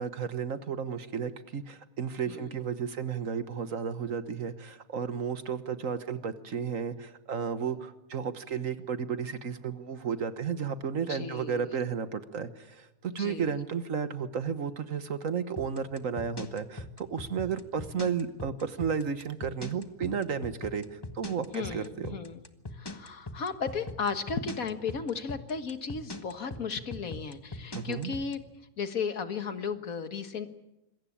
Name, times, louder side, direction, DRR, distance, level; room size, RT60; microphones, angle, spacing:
voice 1, 0.0-22.2 27.7-28.1, right 6 dB, 60° right, 11 dB, 1.6 m, -33 dB
voice 2, 11.1-11.7 13.1-13.5 21.5-22.4 22.7-28.4 28.8-30.5, left 5 dB, 65° left, 9 dB, 1.9 m, -35 dB
sound 1, 15.6-28.3, left 2 dB, 15° left, 1.4 m, -40 dB
26.5 x 22.0 x 8.7 m, 0.93 s
omnidirectional pair, 1.6 m